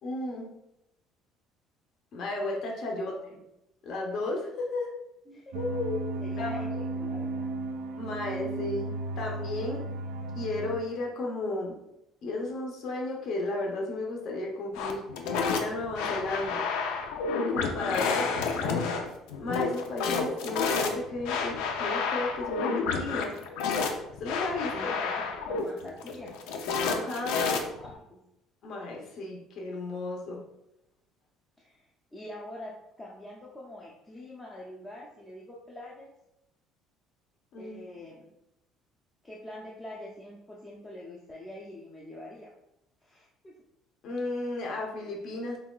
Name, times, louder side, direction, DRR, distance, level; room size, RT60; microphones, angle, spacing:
voice 1, 0.0-0.5 2.1-3.4 3.8-4.9 5.5-6.1 6.4-6.6 8.0-9.8 10.3-11.7 12.2-15.0 15.4-16.6 17.5-18.3 18.6-18.9 19.4-23.4 24.2-24.9 26.8-27.3 28.6-30.4 37.5-37.8 44.0-45.6, left 2 dB, 50° left, -1 dB, 0.7 m, -34 dB
voice 2, 2.9-3.3 5.3-5.6 6.2-6.7 6.9-7.5 18.0-18.4 24.7-26.3 27.2-28.2 31.6-36.1 37.6-38.3 39.2-42.5 43.0-43.5, left 1 dB, 15° left, -4 dB, 0.5 m, -45 dB
sound 1, 5.5-10.8, right 2 dB, 85° right, 0.4 m, -34 dB
sound 2, 14.8-27.9, left 5 dB, 85° left, 0.5 m, -30 dB
5.5 x 2.3 x 2.3 m, 0.87 s
cardioid pair, 140°, 0 cm